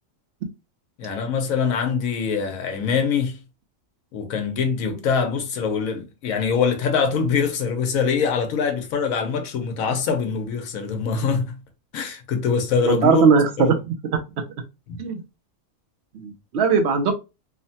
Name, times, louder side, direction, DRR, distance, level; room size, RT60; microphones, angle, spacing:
voice 1, 1.0-3.4 4.1-11.6 11.9-13.3 13.6-13.7 14.9-15.0, left 6 dB, 80° left, 1.1 m, -23 dB
voice 2, 12.8-13.8 14.1-14.2 15.0-15.2 16.1-17.1, right 5 dB, 65° right, 0.7 m, -19 dB
3.0 x 2.1 x 2.6 m
omnidirectional pair, 1.4 m